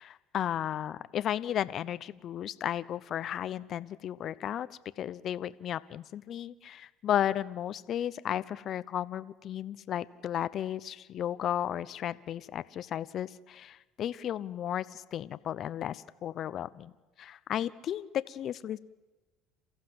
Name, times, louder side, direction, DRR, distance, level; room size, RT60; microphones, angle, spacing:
voice 1, 0.0-16.9 17.2-18.8, left 10 dB, 50° left, 16 dB, 0.8 m, -34 dB
28.5 x 15.5 x 7.9 m, 1.2 s
supercardioid pair, 105°, 0 cm